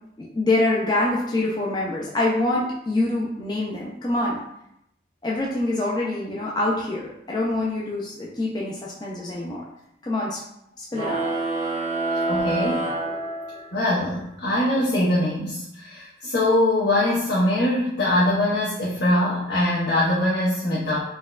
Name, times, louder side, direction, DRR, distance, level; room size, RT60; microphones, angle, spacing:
voice 1, 0.2-4.4 5.2-9.6 10.0-10.4 10.8-11.2, left 2 dB, 25° left, -5 dB, 0.4 m, -25 dB
sound 1, 10.9-13.9, right 2 dB, 40° right, 0.4 m, -27 dB
voice 2, 12.3-12.9 13.7-21.0, left 1 dB, 80° left, -7 dB, 0.8 m, -22 dB
4.0 x 2.2 x 2.4 m, 0.78 s
head